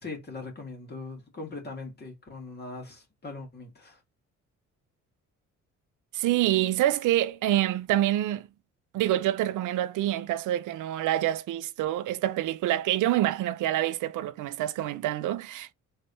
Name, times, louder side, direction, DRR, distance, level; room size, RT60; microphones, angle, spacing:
voice 1, 0.0-4.0, left 3 dB, 35° left, 2.3 m, -40 dB
voice 2, 6.1-8.5 8.9-15.7, right 13 dB, 80° right, 0.6 m, -26 dB
3.9 x 3.3 x 4.1 m
cardioid pair, 90°, 30 cm